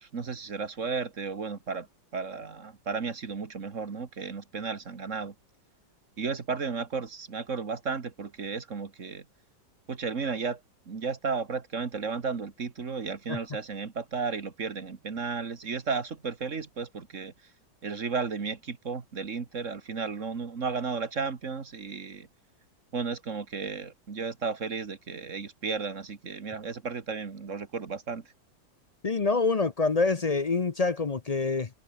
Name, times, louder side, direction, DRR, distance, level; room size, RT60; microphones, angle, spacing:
voice 1, 0.0-1.9 2.1-5.3 6.2-9.3 9.9-10.6 10.9-17.3 17.8-22.3 22.9-28.3, right 5 dB, 45° right, 2.0 m, -34 dB
voice 2, 29.0-31.7, left 4 dB, 45° left, 0.5 m, -26 dB
omnidirectional pair, 2.0 m